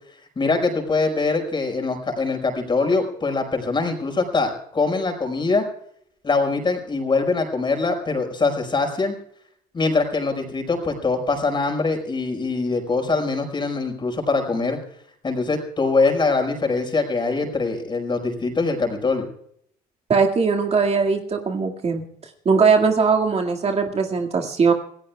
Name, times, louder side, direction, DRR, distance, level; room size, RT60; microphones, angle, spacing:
voice 1, 0.4-5.6 6.2-9.1 9.7-14.8 15.2-19.3, left 3 dB, 30° left, 4 dB, 5.3 m, -23 dB
voice 2, 20.1-22.0 22.5-24.7, right 5 dB, 40° right, 3 dB, 2.1 m, -20 dB
27.0 x 16.5 x 2.4 m, 0.69 s
cardioid pair, 110°, 17 cm